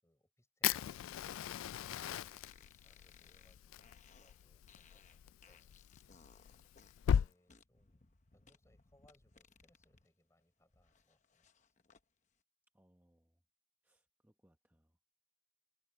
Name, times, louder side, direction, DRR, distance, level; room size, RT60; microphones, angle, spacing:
voice 1, 0.0-5.8 7.2-8.0 8.3-11.7, left 1 dB, 15° left, 6.6 m, -73 dB
Fire, 0.6-7.3, left 9 dB, 85° left, 0.3 m, -38 dB
sound 1, 1.8-10.1 10.4-12.0, left 5 dB, 35° left, 0.9 m, -65 dB
voice 2, 12.7-13.4 13.8-14.9, equal, 10° right, 1.0 m, -72 dB
head